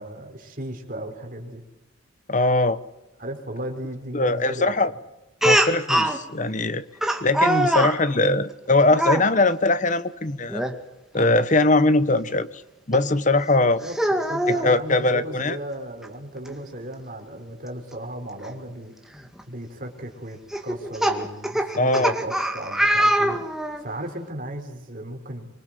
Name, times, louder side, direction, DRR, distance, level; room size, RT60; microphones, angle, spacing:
voice 1, 0.0-1.6 3.2-4.7 13.6-18.9 19.5-23.4 23.8-25.5, right 1 dB, 45° right, 4 dB, 4.5 m, -35 dB
voice 2, 2.3-2.8 4.1-4.9 5.4-6.8 7.2-10.6 11.1-12.6 12.9-13.8 14.5-15.6 21.8-22.1, left 2 dB, 40° left, 13 dB, 1.2 m, -21 dB
Speech, 5.4-6.2 7.0-8.0 8.9-9.2 10.5-10.7 11.2-11.3 12.9-13.0 13.8-14.7 16.0-16.1 16.5-16.6 18.4-18.5 19.2-19.4 20.5-23.8, right 1 dB, ahead, 2.0 m, -23 dB
25.0 x 24.0 x 7.7 m, 0.99 s
head